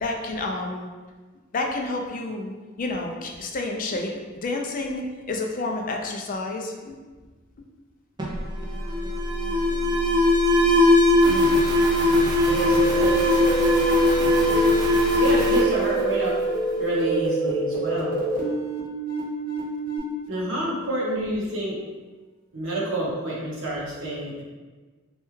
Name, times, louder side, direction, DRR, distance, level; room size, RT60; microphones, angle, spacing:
voice 1, 0.0-0.9 1.5-7.0 9.7-9.9 11.2-11.4, left 2 dB, 40° left, 2 dB, 0.4 m, -30 dB
Alarm, 8.2-16.8, left 1 dB, 20° right, 0.4 m, -20 dB
voice 2, 11.3-11.6 12.0-13.4 14.1-14.7 15.2-16.4 16.8-18.2 20.3-21.8 22.5-24.4, right 1 dB, 70° right, -6 dB, 0.9 m, -29 dB
sound 1, 12.5-20.0, right 3 dB, 45° right, 1.0 m, -27 dB
3.2 x 2.3 x 3.1 m, 1.3 s
head